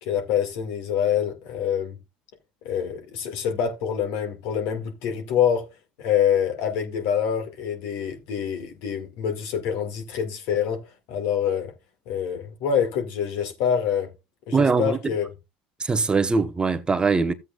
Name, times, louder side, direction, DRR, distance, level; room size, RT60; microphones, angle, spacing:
voice 1, 0.0-2.0 2.6-5.6 6.0-10.8 11.1-11.7 12.1-14.1 14.5-15.3, left 8 dB, 70° left, 2.1 m, -26 dB
voice 2, 14.5-15.0 15.8-17.3, right 4 dB, 20° right, 0.9 m, -21 dB
13.5 x 8.0 x 2.4 m
hypercardioid pair, 80°, 4 cm